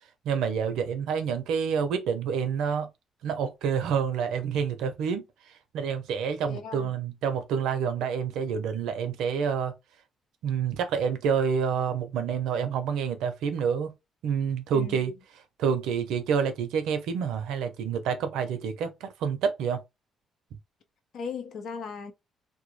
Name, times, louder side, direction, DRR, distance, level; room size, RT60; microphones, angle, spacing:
voice 1, 0.2-2.9 3.2-5.2 5.7-9.7 10.4-13.9 14.2-15.1 15.6-19.8, right 7 dB, 90° right, 0.5 m, -28 dB
voice 2, 6.4-6.9 14.7-15.0 21.1-22.1, left 5 dB, 70° left, 0.5 m, -37 dB
2.2 x 2.0 x 3.0 m
cardioid pair, 90°, 0 cm